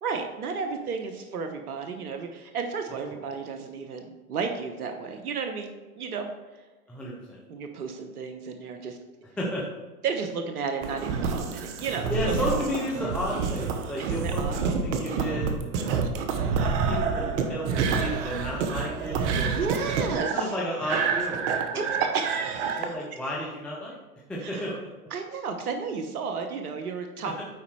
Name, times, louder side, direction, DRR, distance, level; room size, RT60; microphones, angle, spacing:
voice 1, 0.0-5.7 6.0-6.3 7.5-9.0 10.0-12.4 14.0-14.6 15.8-16.0 19.5-20.5 21.7-22.9 24.4-24.8 25.1-27.4, right 5 dB, 75° right, 5 dB, 1.1 m, -33 dB
voice 2, 6.9-7.4 9.4-9.6 12.1-16.1 16.9-19.6 20.0-21.9 22.8-24.0 24.3-24.7, equal, 5° left, -4 dB, 0.3 m, -33 dB
sound 1, 10.8-22.9, right 5 dB, 50° right, 1.1 m, -28 dB
9.8 x 4.1 x 4.7 m, 1.2 s
hypercardioid pair, 120°, 44 cm